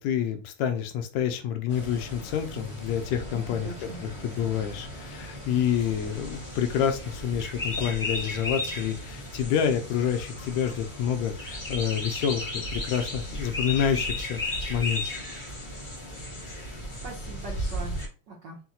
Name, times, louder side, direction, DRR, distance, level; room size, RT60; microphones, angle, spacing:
voice 1, 0.0-15.0, left 8 dB, 80° left, 7 dB, 1.9 m, -28 dB
sound 1, 1.7-18.1, left 1 dB, 30° left, 0.9 m, -35 dB
voice 2, 3.3-4.0 16.7-18.0 18.3-18.6, right 3 dB, 65° right, -3 dB, 1.0 m, -41 dB
5.8 x 2.2 x 3.9 m, 0.35 s
omnidirectional pair, 3.4 m